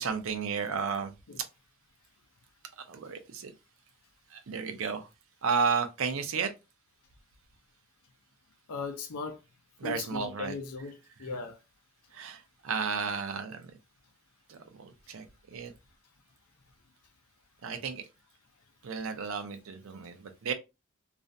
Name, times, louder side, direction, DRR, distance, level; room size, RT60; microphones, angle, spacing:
voice 1, 0.0-1.1 2.9-3.5 4.3-5.1 5.4-6.5 9.8-10.6 11.2-11.4 12.1-13.7 14.5-15.7 17.6-18.0 18.8-20.5, right 5 dB, 65° right, 0.5 m, -33 dB
voice 2, 8.7-9.4 9.8-11.6, left 4 dB, 80° left, 0.6 m, -38 dB
2.5 x 2.1 x 2.5 m
head